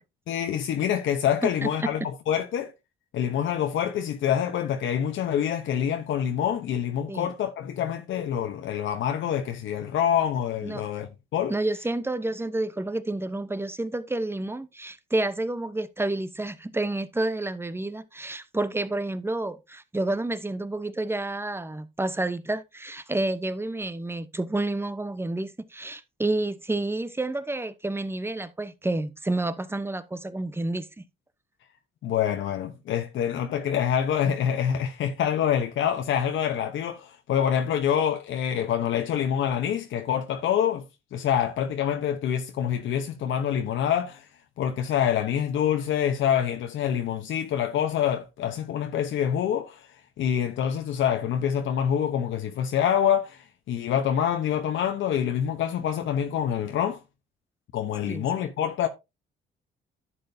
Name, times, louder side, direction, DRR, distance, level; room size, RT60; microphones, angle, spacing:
voice 1, 0.3-2.7 3.1-11.5 32.0-40.8 41.1-44.2 44.6-49.8 50.2-57.0 57.7-58.9, left 9 dB, 75° left, 1.0 m, -26 dB
voice 2, 1.4-1.9 7.1-7.3 10.6-10.8 11.5-31.1 58.0-58.3, right 2 dB, 10° right, 0.9 m, -29 dB
11.0 x 7.5 x 2.7 m
cardioid pair, 90°, 20 cm